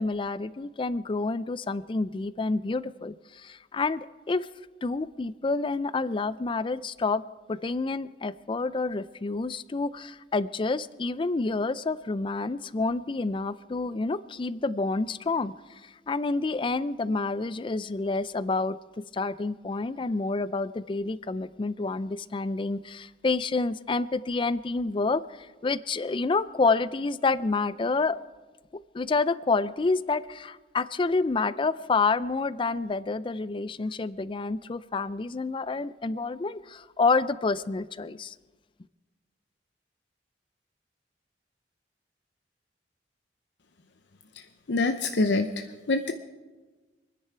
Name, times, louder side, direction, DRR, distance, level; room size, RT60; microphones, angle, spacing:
voice 1, 0.0-4.5 4.8-7.2 7.5-18.8 19.1-28.2 28.9-38.3, left 3 dB, 30° left, 17 dB, 0.4 m, -28 dB
voice 2, 44.7-46.1, left 3 dB, 85° left, 7 dB, 0.7 m, -26 dB
26.0 x 10.0 x 4.5 m, 1.3 s
head